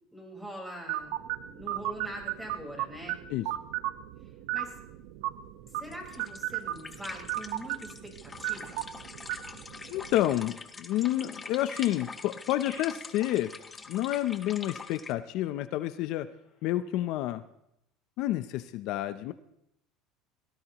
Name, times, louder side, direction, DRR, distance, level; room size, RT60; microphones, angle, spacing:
voice 1, 0.1-1.2 1.5-3.2 4.5-4.7 5.7-8.8, right 1 dB, 5° right, -1 dB, 4.6 m, -43 dB
sound 1, 0.9-10.4, right 14 dB, 80° right, 1.0 m, -36 dB
sound 2, 5.7-15.1, left 4 dB, 20° left, 1.1 m, -45 dB
voice 2, 9.9-13.5 13.9-16.3 16.6-17.4 18.2-19.3, left 14 dB, 65° left, 12 dB, 0.6 m, -29 dB
sound 3, 11.0-17.3, left 4 dB, 45° left, 6.3 m, -55 dB
22.5 x 17.5 x 3.0 m, 0.79 s
supercardioid pair, 130°, 0 cm